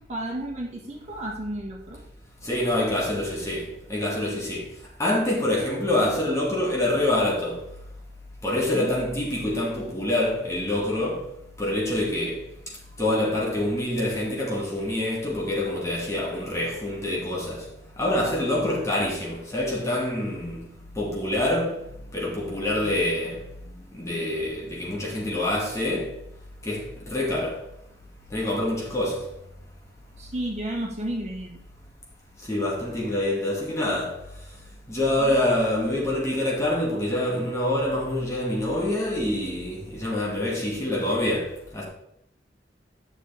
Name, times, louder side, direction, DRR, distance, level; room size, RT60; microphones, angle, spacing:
voice 1, 0.1-2.0 8.7-8.9 30.2-31.6 35.2-35.3, right 1 dB, 40° right, 1.9 m, -32 dB
voice 2, 2.4-3.6 3.9-4.6 5.0-7.6 8.4-11.2 11.6-12.4 13.0-17.6 18.0-20.6 21.0-21.8 22.1-23.4 23.9-26.1 26.7-27.5 28.3-29.2 32.5-34.1 34.9-41.5 41.7-41.8, left 1 dB, 15° left, 2.3 m, -26 dB
11.0 x 6.8 x 3.5 m
head